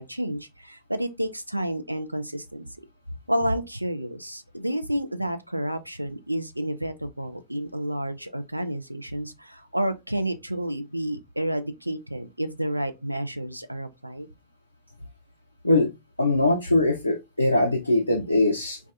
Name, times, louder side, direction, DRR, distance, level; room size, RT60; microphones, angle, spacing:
voice 1, 0.0-2.7 3.3-14.3, right 1 dB, 90° right, 0.3 m, -30 dB
voice 2, 16.2-18.8, left 2 dB, 85° left, 0.4 m, -22 dB
2.2 x 2.2 x 2.5 m
figure-of-eight pair, 90°, 0 cm